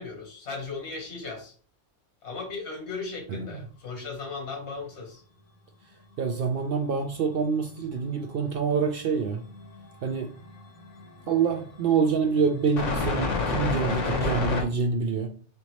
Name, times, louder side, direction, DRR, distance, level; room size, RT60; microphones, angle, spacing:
voice 1, 0.0-1.5 2.2-5.2, left 4 dB, 65° left, 2 dB, 1.5 m, -37 dB
voice 2, 3.3-3.6 6.2-9.4 10.0-10.3 11.3-15.3, right 5 dB, 60° right, 6 dB, 0.6 m, -26 dB
sound 1, 6.6-6.7 8.0-8.9 9.2-14.6, left 3 dB, 80° left, 1.3 m, -31 dB
3.9 x 3.4 x 3.0 m, 0.42 s
omnidirectional pair, 1.3 m